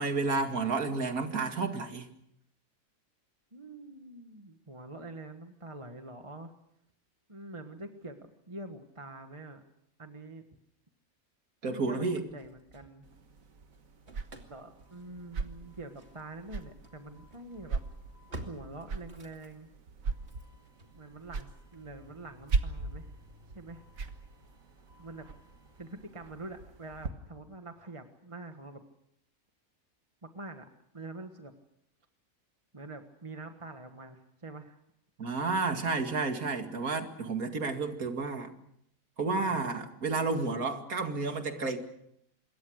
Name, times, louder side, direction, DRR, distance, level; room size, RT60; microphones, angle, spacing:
voice 1, 0.0-2.1 11.6-12.2 35.2-38.5 39.2-41.8, right 3 dB, 90° right, 6 dB, 2.7 m, -31 dB
voice 2, 3.5-6.5 7.3-9.6 10.0-10.5 11.7-13.1 14.5-17.8 18.4-19.7 20.9-23.1 23.5-23.8 25.0-25.3 25.8-28.8 30.2-30.7 30.9-31.5 32.7-34.8 39.4-39.9, right 2 dB, 25° right, 6 dB, 1.5 m, -45 dB
Engine starting / Slam, 12.1-13.4 13.7-26.8, right 1 dB, 50° right, 2.7 m, -53 dB
sound 1, 13.0-27.1, right 4 dB, 70° right, 1.8 m, -39 dB
26.5 x 22.5 x 6.5 m, 0.74 s
omnidirectional pair, 1.5 m